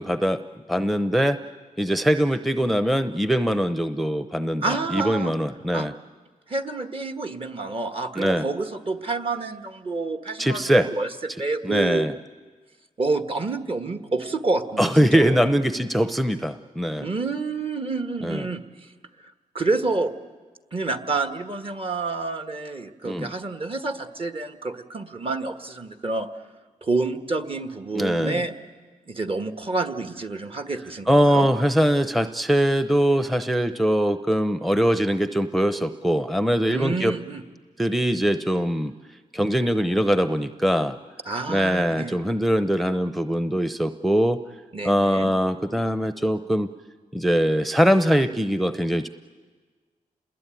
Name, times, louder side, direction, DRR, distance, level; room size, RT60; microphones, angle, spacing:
voice 1, 0.0-1.4 1.8-5.9 8.2-8.5 10.4-10.9 11.6-12.1 14.8-17.1 18.2-18.5 23.0-23.3 27.9-28.4 31.1-37.1 37.8-38.9 39.3-41.0 41.5-44.4 44.8-46.7 47.1-49.1, equal, ahead, 11 dB, 0.7 m, -22 dB
voice 2, 4.6-5.3 5.7-5.9 6.5-12.1 13.0-15.4 17.0-18.6 19.5-20.1 20.7-26.3 26.8-28.5 29.1-31.5 36.7-37.4 41.2-42.1 44.7-45.3, right 3 dB, 40° right, 8 dB, 1.6 m, -28 dB
28.0 x 21.0 x 9.2 m, 1.4 s
cardioid pair, 70°, 15 cm